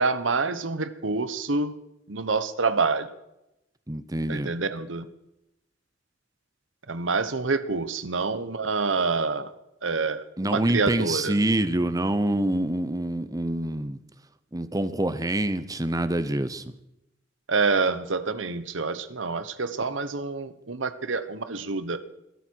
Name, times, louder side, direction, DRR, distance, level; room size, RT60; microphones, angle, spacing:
voice 1, 0.0-1.7 2.1-3.1 4.3-5.1 6.9-9.5 9.8-11.3 17.5-22.0, right 4 dB, 85° right, 12 dB, 1.1 m, -27 dB
voice 2, 3.9-4.6 10.4-14.0 14.5-16.6, right 1 dB, 20° right, 13 dB, 0.9 m, -26 dB
22.0 x 13.0 x 4.7 m, 0.86 s
head